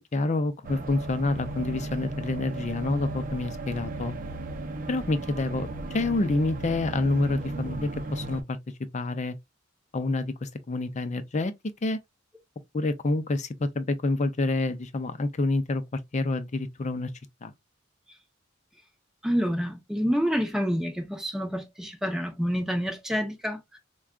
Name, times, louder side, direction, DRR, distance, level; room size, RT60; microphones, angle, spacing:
voice 1, 0.1-4.1 4.9-8.6 8.9-9.3 9.9-11.5 11.8-12.0 12.7-17.1 17.4-17.5, left 2 dB, 40° left, 0.5 m, -28 dB
sound 1, 0.6-8.4, right 2 dB, 45° right, 0.6 m, -35 dB
voice 2, 19.2-23.8, equal, 5° right, 0.7 m, -28 dB
4.7 x 2.3 x 2.4 m
head